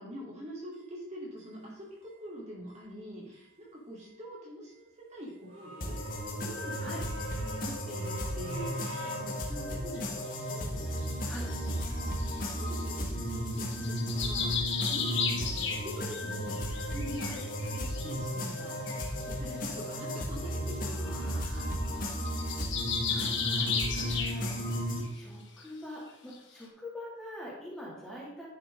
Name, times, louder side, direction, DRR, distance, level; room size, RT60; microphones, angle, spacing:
voice 1, 0.0-6.9 7.4-10.2 10.5-11.4 11.7-22.0, equal, 35° right, -4 dB, 2.3 m, -45 dB
sound 1, 0.7-0.8 1.4-1.5 2.0-2.1 2.7-2.8 3.3-3.5 4.0-4.1 4.6-4.7 5.3-10.0 10.5-11.4 11.8-12.7 13.1-14.1 14.4-15.4, equal, 80° right, 2.5 m, -48 dB
sound 2, 5.8-25.0, equal, 45° left, 1.6 m, -34 dB
sound 3, 9.9-10.1 10.8-13.1 13.6-16.2 16.5-18.1 18.6-18.7 18.9-19.1 20.1-20.2 20.5-20.6 20.9-21.1 21.4-21.6 21.8-24.7 25.0-25.2 25.6-25.7 26.3-26.4, left 6 dB, 65° left, 1.5 m, -34 dB
voice 2, 20.9-21.7 23.1-24.6 25.1-28.5, equal, 5° left, -6 dB, 2.5 m, -44 dB
10.5 x 6.3 x 3.8 m, 0.89 s
head